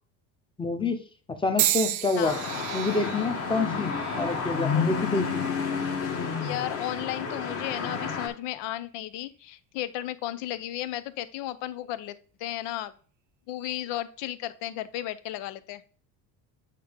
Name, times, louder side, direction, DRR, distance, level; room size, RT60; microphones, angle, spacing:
voice 1, 0.6-1.0 1.4-2.3 2.7-5.4, left 3 dB, 10° left, 7 dB, 0.8 m, -27 dB
sound 1, 1.6-5.7 6.4-6.8 7.8-8.0, right 13 dB, 45° right, 0.5 m, -33 dB
sound 2, 2.2-8.3, left 5 dB, 30° left, 1.3 m, -30 dB
voice 2, 6.4-12.9 13.5-15.8, left 13 dB, 70° left, 14 dB, 0.7 m, -34 dB
8.5 x 2.9 x 5.1 m, 0.42 s
cardioid pair, 135°, 44 cm